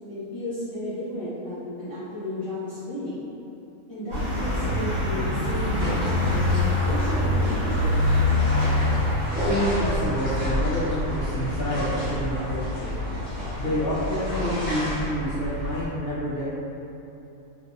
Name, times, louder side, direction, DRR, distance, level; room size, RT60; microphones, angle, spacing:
voice 1, 0.0-3.2 3.9-8.0, left 1 dB, 30° left, -15 dB, 0.6 m, -33 dB
sound 1, 4.1-15.9, left 2 dB, 65° right, 1.3 m, -26 dB
sound 2, 5.8-15.1, equal, 5° right, 1.0 m, -33 dB
voice 2, 9.4-12.9 13.6-16.4, equal, 70° left, -11 dB, 0.5 m, -28 dB
2.6 x 2.6 x 2.2 m, 2.8 s
omnidirectional pair, 1.5 m